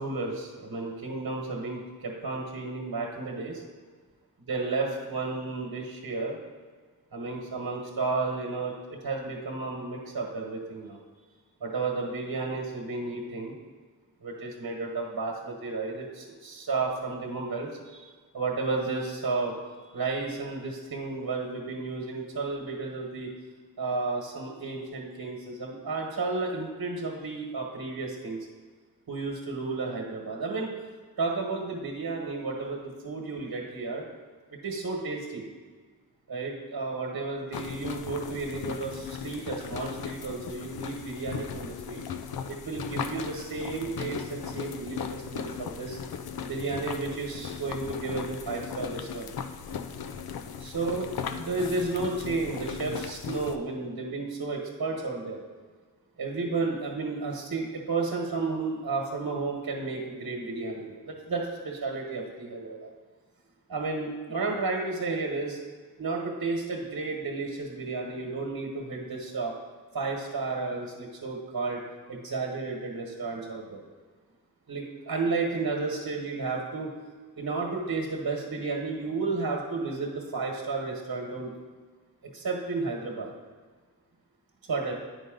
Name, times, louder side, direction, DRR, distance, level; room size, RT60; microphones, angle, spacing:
voice 1, 0.0-3.6 4.5-6.4 7.1-11.0 11.6-13.6 14.2-18.1 18.3-19.5 19.9-23.3 23.8-28.4 29.1-30.7 31.2-34.0 34.6-35.5 36.3-42.0 42.5-46.0 46.4-49.3 50.6-55.4 56.2-62.9 63.7-65.6 66.0-69.5 69.9-71.8 72.1-73.8 74.7-76.9 77.3-81.6 82.2-83.3 84.7-84.9, right 3 dB, 70° right, -1 dB, 1.3 m, -32 dB
sound 1, 37.5-53.6, left 7 dB, 80° left, 0.6 m, -37 dB
9.2 x 5.4 x 3.8 m, 1.6 s
wide cardioid pair, 95°, 36 cm